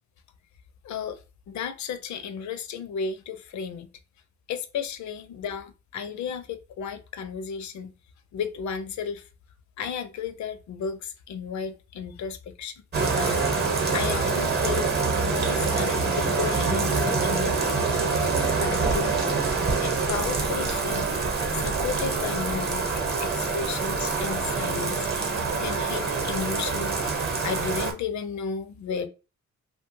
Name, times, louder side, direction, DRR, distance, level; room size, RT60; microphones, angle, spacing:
voice 1, 0.8-1.2 1.5-3.9 4.5-7.9 8.3-9.2 9.8-12.7 13.2-13.4 13.9-14.9 15.3-18.1 18.6-19.4 19.8-21.1 21.6-22.9 23.2-25.1 25.6-27.0 27.4-29.1, left 6 dB, 70° left, 0.5 m, -33 dB
Bathtub (filling or washing), 12.9-27.9, right 4 dB, 35° right, 0.8 m, -25 dB
2.7 x 2.2 x 3.0 m
cardioid pair, 115°, 30 cm